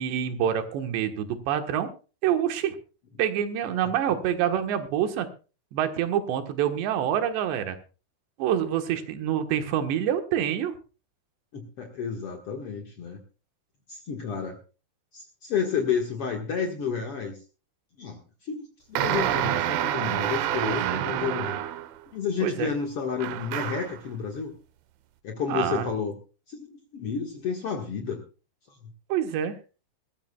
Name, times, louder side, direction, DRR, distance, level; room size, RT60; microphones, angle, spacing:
voice 1, 0.0-1.9 2.2-2.8 3.2-5.3 5.7-7.8 8.4-10.8 19.2-19.4 20.6-21.0 22.4-22.7 25.5-25.9 29.1-29.6, right 10 dB, 70° right, 7 dB, 3.4 m, -27 dB
voice 2, 11.5-13.2 13.9-14.6 15.1-17.4 18.0-21.6 22.1-24.5 25.2-26.2 26.5-28.2, left 6 dB, 75° left, 2 dB, 1.3 m, -31 dB
sound 1, 19.0-22.0 23.2-24.0, right 12 dB, 90° right, 3.4 m, -28 dB
22.0 x 14.0 x 2.3 m, 0.34 s
omnidirectional pair, 5.4 m